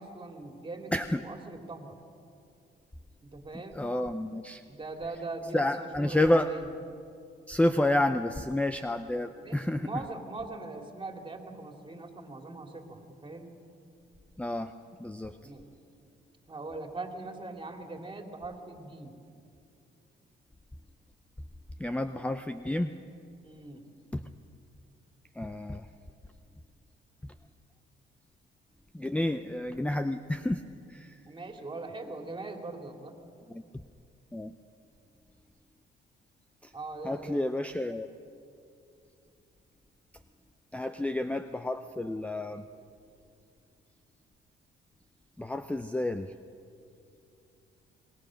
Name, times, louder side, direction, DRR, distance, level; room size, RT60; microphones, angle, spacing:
voice 1, 0.0-2.0 3.2-3.8 4.7-6.7 9.4-13.5 15.4-15.8 16.5-19.2 23.4-23.9 31.3-33.2 36.7-37.5, right 3 dB, 25° right, 4 dB, 2.8 m, -41 dB
voice 2, 0.9-1.2 3.7-4.6 5.5-6.5 7.5-9.9 14.4-14.7 15.0-15.3 21.8-22.9 24.1-24.2 25.4-25.8 28.9-30.6 30.9-31.2 33.5-33.6 34.3-34.5 37.0-38.1 40.7-42.6 45.4-46.3, left 1 dB, 5° left, 9 dB, 0.6 m, -29 dB
26.5 x 20.0 x 6.4 m, 2.6 s
cardioid pair, 90°, 20 cm